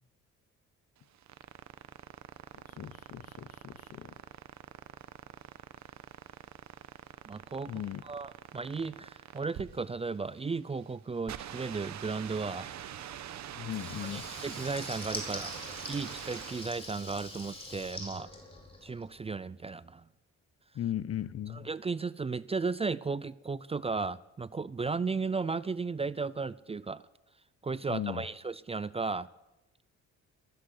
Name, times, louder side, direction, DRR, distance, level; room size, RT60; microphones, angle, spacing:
sound 1, 1.0-16.9, right 10 dB, 65° right, 1.1 m, -45 dB
voice 1, 2.8-4.1 7.7-8.0 13.5-14.3 20.7-21.7 27.9-28.2, left 11 dB, 50° left, 0.8 m, -37 dB
voice 2, 7.3-12.7 14.0-15.5 15.9-18.3 18.8-20.0 21.5-27.0 27.6-29.3, right 4 dB, 20° right, 0.5 m, -35 dB
Water tap faucet / Liquid, 13.6-19.1, left 2 dB, 20° left, 4.6 m, -43 dB
14.0 x 13.5 x 7.8 m
cardioid pair, 90°, 30 cm